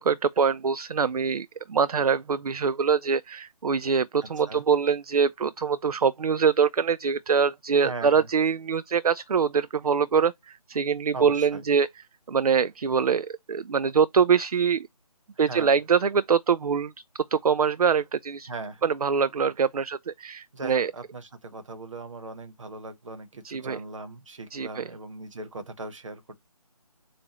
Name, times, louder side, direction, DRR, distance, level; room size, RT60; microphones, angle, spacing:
voice 1, 0.0-11.9 12.3-14.9 15.4-16.9 17.3-18.5 18.8-20.9 23.4-23.8 24.5-24.8, right 6 dB, 65° right, 0.4 m, -24 dB
voice 2, 7.7-8.3 11.1-11.6 15.3-15.8 18.5-18.9 20.5-26.4, right 3 dB, 50° right, 1.1 m, -39 dB
7.2 x 2.5 x 3.0 m
figure-of-eight pair, 155°, 20 cm